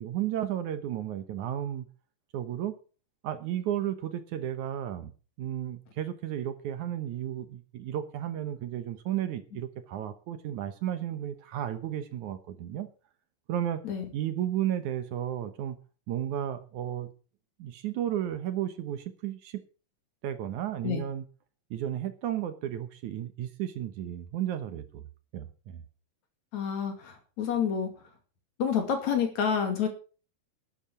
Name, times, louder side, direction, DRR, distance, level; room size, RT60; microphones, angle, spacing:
voice 1, 0.0-1.9 2.3-2.8 3.2-5.1 5.4-12.9 13.5-13.8 14.1-15.8 16.1-17.1 17.6-19.6 20.2-21.2 21.7-25.1 25.3-25.8, right 11 dB, 65° right, 2.3 m, -33 dB
voice 2, 26.5-27.9 28.6-29.9, left 7 dB, 55° left, 3.5 m, -28 dB
12.5 x 10.0 x 6.1 m
omnidirectional pair, 4.0 m